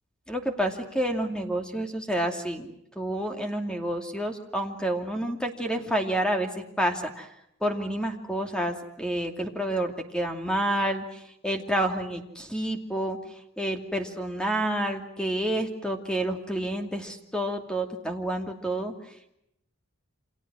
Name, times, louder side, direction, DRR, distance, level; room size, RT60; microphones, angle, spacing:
voice 1, 0.3-7.3 7.6-13.2 13.6-19.3, right 1 dB, 5° left, 4 dB, 2.6 m, -29 dB
29.5 x 26.5 x 6.3 m, 0.78 s
head